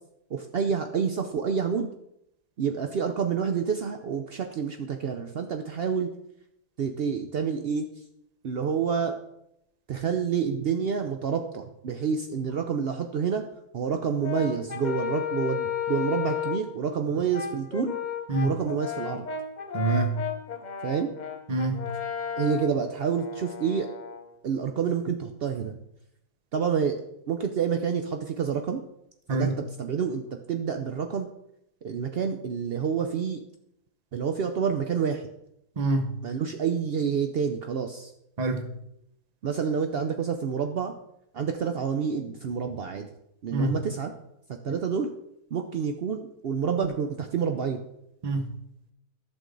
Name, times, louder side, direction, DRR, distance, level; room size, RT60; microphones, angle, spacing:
voice 1, 0.3-1.9 2.6-6.1 6.8-8.0 8.4-9.1 9.9-13.4 13.7-18.0 18.4-19.3 20.8-21.1 22.4-23.9 24.4-25.8 26.5-27.0 27.3-28.8 29.3-31.3 31.8-33.4 34.1-35.3 36.2-38.1 39.4-40.9 41.3-43.1 43.4-44.1 44.5-45.1 45.5-47.8, right 6 dB, 80° right, 6 dB, 0.5 m, -28 dB
Brass instrument, 14.2-16.7 17.3-24.3, left 8 dB, 50° left, 0.5 m, -33 dB
voice 2, 19.7-20.3 21.5-21.8 29.3-29.5 35.8-36.1 38.4-38.6 43.5-43.7 48.2-48.5, right 3 dB, 30° right, 7 dB, 0.8 m, -25 dB
11.0 x 6.1 x 3.8 m, 0.80 s
omnidirectional pair, 1.7 m